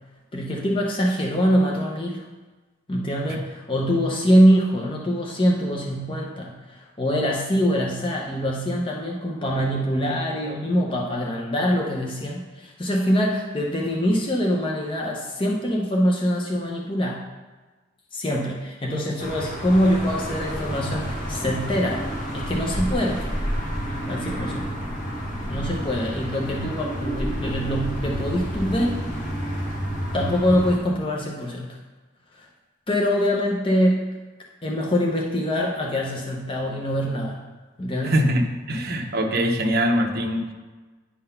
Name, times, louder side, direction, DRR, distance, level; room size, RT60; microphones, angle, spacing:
voice 1, 0.3-2.2 2.9-17.2 18.1-22.0 22.3-23.3 24.1-24.7 25.5-29.0 30.1-31.8 32.3-32.5 32.9-34.1 34.6-37.4 37.8-38.2, equal, 25° left, -2 dB, 0.7 m, -24 dB
sound 1, 19.2-30.8, equal, 40° left, 1.2 m, -29 dB
voice 2, 38.0-40.5, equal, 45° right, 2 dB, 0.9 m, -23 dB
9.8 x 3.8 x 5.6 m, 1.3 s
head